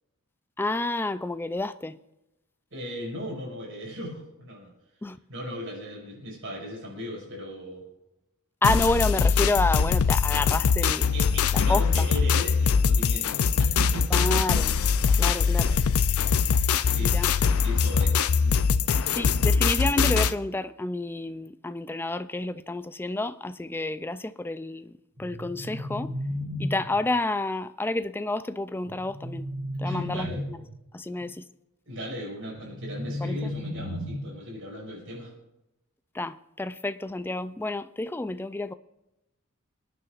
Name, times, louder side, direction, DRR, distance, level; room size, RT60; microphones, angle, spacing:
voice 1, 0.6-2.0 5.0-5.2 8.6-11.1 11.5-12.1 14.1-14.7 15.1-15.8 17.0-17.3 19.2-26.1 26.6-29.5 29.8-30.6 30.9-31.4 33.2-33.4 36.1-38.7, left 2 dB, 10° left, 0.3 m, -29 dB
voice 2, 2.7-4.7 5.3-7.8 10.8-14.3 15.2-16.0 16.9-19.2 29.8-30.4 31.2-31.3 31.9-35.3, equal, 65° right, 5.8 m, -38 dB
sound 1, 8.6-20.3, left 5 dB, 80° left, 0.5 m, -22 dB
sound 2, 25.2-27.2 28.9-30.7 32.5-34.5, left 1 dB, 35° right, 3.6 m, -34 dB
27.5 x 9.6 x 2.5 m
head